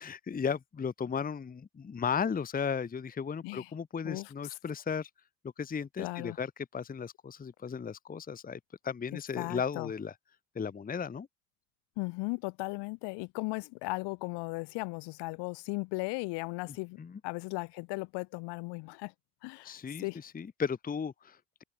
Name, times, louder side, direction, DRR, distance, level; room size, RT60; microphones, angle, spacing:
voice 1, 0.0-5.1 5.6-10.1 10.5-11.3 17.0-17.2 19.6-21.6, left 6 dB, 20° left, 0.9 m, -35 dB
voice 2, 6.0-6.4 9.4-9.9 12.0-19.1 19.4-19.7 20.0-20.2, left 26 dB, 70° left, 2.0 m, -37 dB
open air
hypercardioid pair, 65°, 43 cm